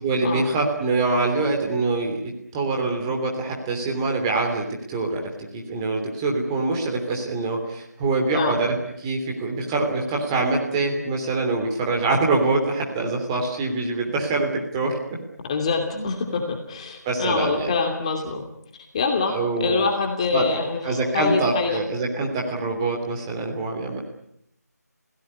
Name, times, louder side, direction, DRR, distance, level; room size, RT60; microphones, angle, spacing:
voice 1, 0.0-8.8 9.0-15.0 15.9-16.1 17.0-17.7 19.3-19.9 20.3-20.5 20.8-24.0, right 3 dB, 15° right, 1 dB, 3.0 m, -24 dB
voice 2, 15.5-18.4 18.9-20.8 21.1-21.8, left 4 dB, 20° left, 3 dB, 2.6 m, -25 dB
28.0 x 17.0 x 9.8 m, 0.74 s
figure-of-eight pair, 165°, 9 cm